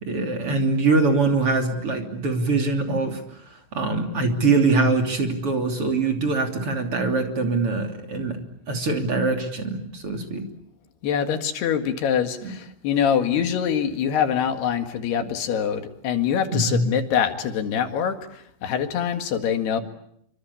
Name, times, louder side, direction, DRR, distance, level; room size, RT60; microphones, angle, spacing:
voice 1, 0.0-3.2 3.7-8.4 8.7-10.4 12.4-12.5 16.5-16.8, right 3 dB, 35° right, 4 dB, 3.2 m, -23 dB
voice 2, 11.0-19.8, left 8 dB, 60° left, 7 dB, 3.6 m, -24 dB
27.0 x 25.0 x 8.5 m, 0.73 s
omnidirectional pair, 5.6 m